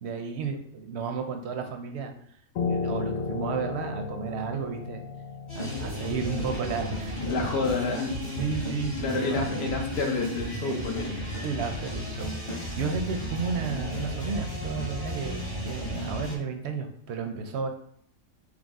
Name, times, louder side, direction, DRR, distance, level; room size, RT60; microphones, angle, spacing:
voice 1, 0.0-2.1 2.7-5.0 5.5-8.1 8.4-9.5 11.4-17.7, right 5 dB, 65° right, 5 dB, 0.8 m, -33 dB
Piano, 2.6-7.8, left 4 dB, 85° left, 1.0 m, -34 dB
sound 1, 5.5-16.4, left 1 dB, 25° left, 0.8 m, -33 dB
voice 2, 7.3-8.2 9.0-11.1, left 3 dB, 55° left, 1 dB, 1.0 m, -29 dB
4.9 x 2.1 x 3.5 m, 0.66 s
omnidirectional pair, 1.4 m